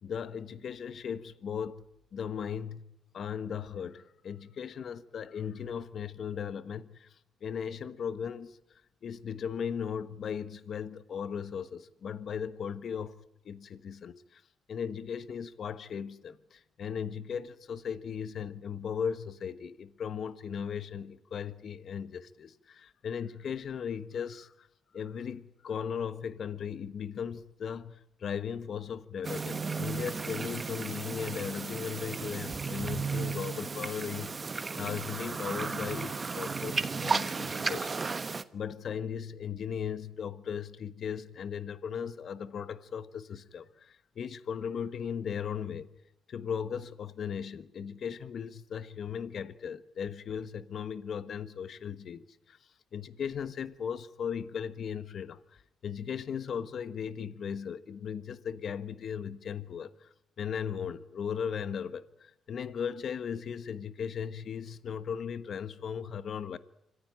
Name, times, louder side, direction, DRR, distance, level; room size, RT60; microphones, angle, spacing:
voice 1, 0.0-1.8 2.1-2.9 3.1-8.6 9.0-14.4 14.7-24.7 24.9-38.2 38.5-45.9 46.3-52.6 52.9-66.6, left 7 dB, 55° left, 1.3 m, -37 dB
sound 1, 29.2-38.4, right 4 dB, 30° right, 1.2 m, -34 dB
26.0 x 15.0 x 8.9 m
cardioid pair, 90°, 0 cm